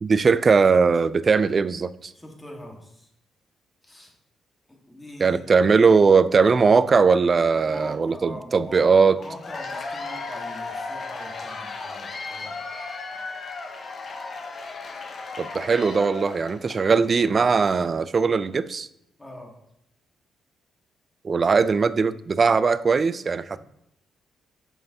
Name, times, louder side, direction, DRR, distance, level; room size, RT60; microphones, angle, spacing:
voice 1, 0.0-2.1 5.2-9.2 15.4-18.9 21.2-23.6, right 5 dB, 40° right, 16 dB, 0.3 m, -19 dB
voice 2, 2.1-3.1 3.8-4.1 4.7-5.7 7.7-12.6 16.8-16.9 19.2-19.5, equal, 15° left, 1 dB, 1.6 m, -42 dB
Cheering / Applause / Crowd, 9.2-16.9, left 3 dB, 50° left, 0.9 m, -35 dB
6.7 x 5.3 x 2.8 m, 0.77 s
supercardioid pair, 65°, 0 cm